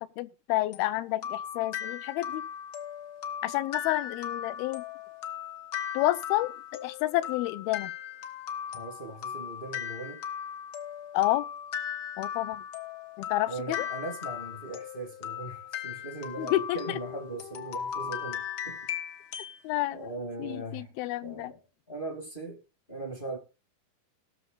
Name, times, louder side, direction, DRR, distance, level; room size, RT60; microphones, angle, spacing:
voice 1, 0.0-2.4 3.4-4.8 5.9-6.5 6.8-7.9 11.1-11.5 12.2-12.6 13.2-13.9 16.4-17.0 19.6-20.1 20.4-21.5, left 16 dB, 85° left, 2.6 m, -29 dB
sound 1, 0.7-19.6, left 9 dB, 70° left, 1.2 m, -38 dB
voice 2, 8.7-10.2 13.5-18.8 19.9-20.9 21.2-21.6 21.9-22.6 22.9-23.4, right 2 dB, 35° left, 0.8 m, -39 dB
18.5 x 6.6 x 3.8 m
omnidirectional pair, 4.3 m